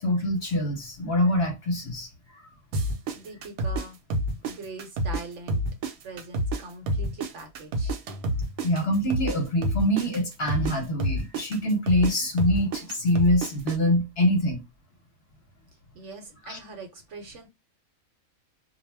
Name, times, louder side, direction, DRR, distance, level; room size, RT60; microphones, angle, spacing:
voice 1, 0.0-2.4 8.6-14.6 16.4-16.6, left 1 dB, 55° left, 0.8 m, -25 dB
sound 1, 2.7-5.2 5.5-9.4 9.6-13.8, right 1 dB, 85° right, 1.1 m, -28 dB
voice 2, 3.1-4.0 4.4-5.6 6.0-8.0 15.9-17.5, right 3 dB, 65° right, 0.9 m, -42 dB
2.3 x 2.1 x 3.2 m
omnidirectional pair, 1.5 m